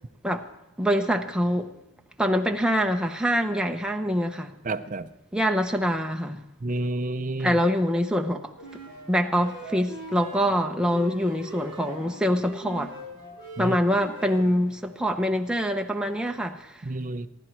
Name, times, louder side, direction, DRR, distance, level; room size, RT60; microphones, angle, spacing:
voice 1, 0.8-1.7 2.2-4.5 5.3-6.4 7.4-8.5 9.1-12.9 13.6-16.8, equal, 5° right, 0.8 m, -25 dB
voice 2, 4.7-5.1 6.6-7.6 13.6-13.8 16.8-17.3, right 2 dB, 35° right, 0.6 m, -29 dB
sound 1, 8.6-14.7, right 1 dB, 20° left, 7.1 m, -41 dB
27.0 x 11.0 x 4.5 m
head